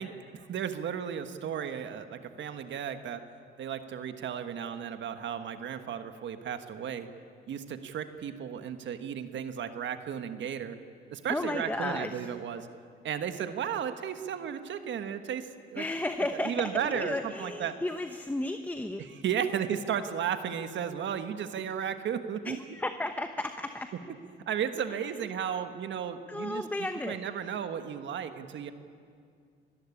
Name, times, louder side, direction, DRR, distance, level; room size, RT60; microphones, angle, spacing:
voice 1, 0.0-3.2 3.6-7.1 7.5-10.8 11.1-12.7 13.0-15.8 16.3-17.7 19.2-22.6 24.5-28.7, right 8 dB, 70° right, 9 dB, 1.5 m, -34 dB
voice 2, 11.3-12.3 15.8-19.0 22.4-24.1 24.9-25.1 25.5-25.6 26.3-27.2, left 1 dB, 10° left, 8 dB, 1.0 m, -34 dB
25.0 x 14.5 x 10.0 m, 2.2 s
cardioid pair, 90°, 20 cm